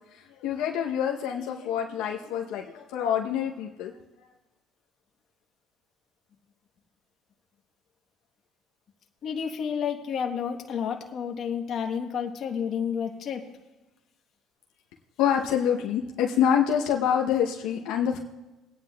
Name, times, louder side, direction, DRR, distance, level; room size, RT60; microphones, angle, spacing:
voice 1, 0.1-3.9 15.2-18.2, left 8 dB, 75° left, 1 dB, 0.8 m, -26 dB
voice 2, 9.2-13.5, left 7 dB, 50° left, 2 dB, 1.1 m, -30 dB
22.0 x 9.4 x 2.3 m, 1.1 s
cardioid pair, 115°, 0 cm